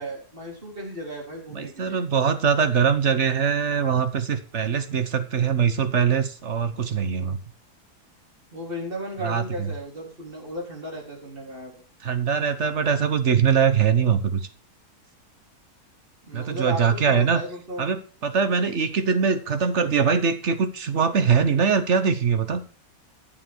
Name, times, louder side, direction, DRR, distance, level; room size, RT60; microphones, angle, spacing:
voice 1, 0.0-2.0 8.5-11.8 16.2-17.9, right 1 dB, 35° right, -2 dB, 4.1 m, -35 dB
voice 2, 1.5-7.4 9.2-9.7 12.0-14.5 16.3-17.4 17.8-22.6, right 6 dB, 50° right, 10 dB, 1.2 m, -22 dB
11.0 x 7.1 x 6.0 m, 0.37 s
omnidirectional pair, 1.7 m